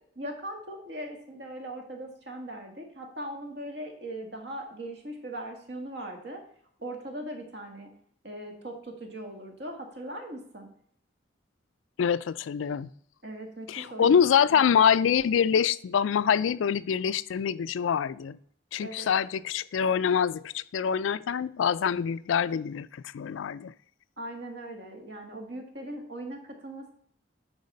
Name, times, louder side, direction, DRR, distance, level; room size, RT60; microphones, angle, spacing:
voice 1, 0.2-6.4 6.8-7.9 8.2-10.7 13.2-14.6 18.8-19.1 24.2-26.9, right 1 dB, 60° right, 3 dB, 1.7 m, -39 dB
voice 2, 12.0-12.9 13.7-18.4 18.7-23.7, left 7 dB, 85° left, 17 dB, 0.4 m, -25 dB
9.6 x 4.1 x 5.3 m, 0.63 s
head